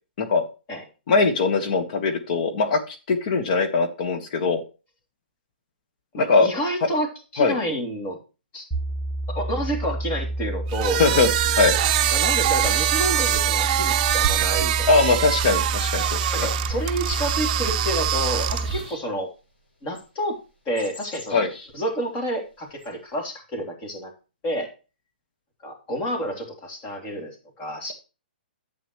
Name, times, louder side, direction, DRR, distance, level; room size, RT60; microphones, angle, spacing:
voice 1, 0.2-0.5 1.1-4.6 6.1-6.5 7.4-7.6 11.0-11.3 11.6-11.7 14.9-16.5 21.3-21.5, left 4 dB, 50° left, 6 dB, 1.6 m, -21 dB
voice 2, 6.1-8.2 8.5-8.7 9.3-11.0 12.1-14.9 16.3-19.3 19.8-20.4 20.6-21.5 21.7-24.1 24.4-24.7 25.6-27.9, equal, 25° left, 1 dB, 3.1 m, -29 dB
sound 1, 8.7-18.7, right 1 dB, ahead, 1.4 m, -29 dB
sound 2, 10.7-18.9, right 12 dB, 40° right, 0.6 m, -24 dB
sound 3, 15.9-16.9 17.9-19.1 20.0-20.1 20.8-21.7 22.8-22.9, left 2 dB, 75° left, 6.2 m, -42 dB
11.5 x 8.3 x 3.2 m, 0.32 s
hypercardioid pair, 145°, 6 cm